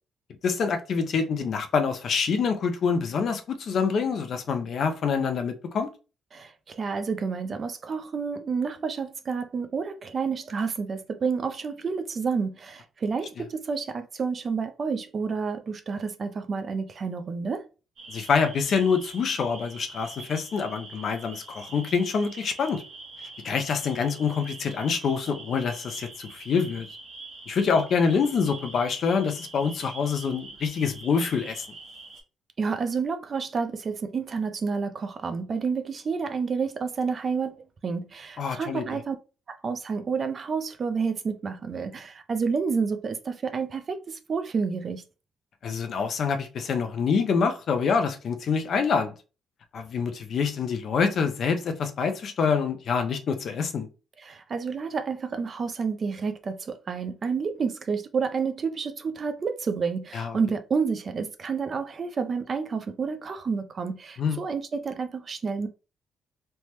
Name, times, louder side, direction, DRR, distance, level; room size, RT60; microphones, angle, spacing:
voice 1, 0.4-5.9 18.1-22.8 23.4-26.9 27.5-31.6 38.4-39.0 45.6-49.1 49.7-53.9 60.1-60.4 64.2-64.4, left 5 dB, 60° left, 0.6 m, -26 dB
voice 2, 6.3-17.6 32.6-37.6 37.8-39.2 39.6-45.0 54.2-65.7, right 5 dB, 45° right, 0.5 m, -29 dB
sound 1, 18.0-32.2, right 3 dB, 65° right, 1.1 m, -44 dB
3.3 x 2.1 x 2.9 m
cardioid pair, 90°, 0 cm